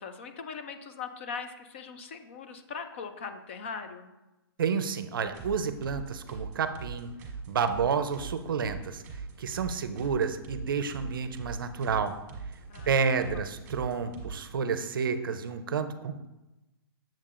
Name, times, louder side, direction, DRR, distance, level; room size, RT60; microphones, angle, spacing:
voice 1, 0.0-4.1 12.7-13.4, left 5 dB, 30° left, 7 dB, 0.4 m, -40 dB
voice 2, 4.6-7.1 7.5-9.0 9.4-12.1 12.9-16.3, right 6 dB, 60° right, 10 dB, 0.5 m, -30 dB
sound 1, 5.3-14.4, right 4 dB, 20° right, 1.5 m, -42 dB
7.4 x 7.2 x 2.5 m, 1.0 s
hypercardioid pair, 170°, 13 cm